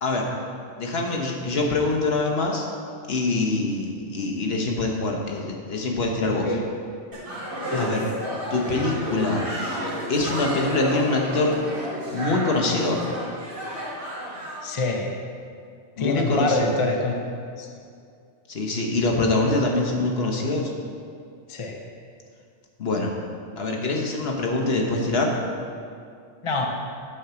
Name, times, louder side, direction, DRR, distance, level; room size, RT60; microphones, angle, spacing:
voice 1, 0.8-2.7 3.1-6.5 7.8-8.1 8.5-9.5 10.1-11.6 12.1-13.0 16.0-16.8 18.5-20.7 22.8-23.1 23.6-25.4, left 2 dB, 55° left, 0 dB, 1.2 m, -24 dB
voice 2, 6.0-6.7 7.7-8.0 14.6-15.1 16.0-17.1 17.6-17.7 21.5-21.8 26.4-26.7, left 2 dB, 30° left, 1 dB, 0.6 m, -26 dB
sound 1, 7.1-14.6, equal, 50° right, 1.9 m, -31 dB
8.7 x 4.5 x 6.8 m, 2.4 s
omnidirectional pair, 1.3 m